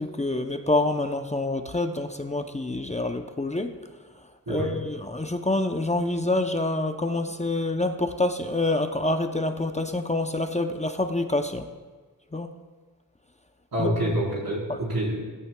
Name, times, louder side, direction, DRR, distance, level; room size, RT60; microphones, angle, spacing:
voice 1, 0.0-3.8 4.5-11.7 12.3-12.5 13.8-14.2 14.7-14.8, left 2 dB, 20° left, 6 dB, 0.6 m, -27 dB
voice 2, 13.7-15.2, right 1 dB, 85° right, -4 dB, 4.3 m, -27 dB
16.5 x 15.0 x 2.2 m, 1.4 s
wide cardioid pair, 100°, 35 cm